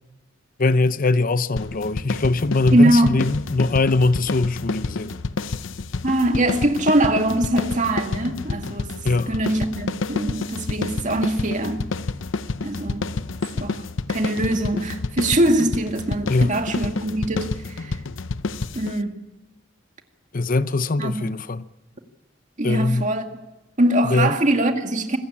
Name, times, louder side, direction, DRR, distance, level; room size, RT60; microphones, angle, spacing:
voice 1, 0.6-5.2 9.0-9.4 16.3-16.6 20.3-21.7 22.6-23.1 24.0-24.4, left 3 dB, 45° left, 0.8 m, -21 dB
sound 1, 1.6-19.0, left 3 dB, 85° left, 0.8 m, -29 dB
voice 2, 2.7-3.2 6.0-8.9 9.3-11.9 12.6-13.1 13.5-13.8 14.1-18.0 18.7-19.2 21.0-21.2 22.6-23.3 23.8-25.2, right 1 dB, 40° right, 2.1 m, -22 dB
26.0 x 15.0 x 8.7 m
head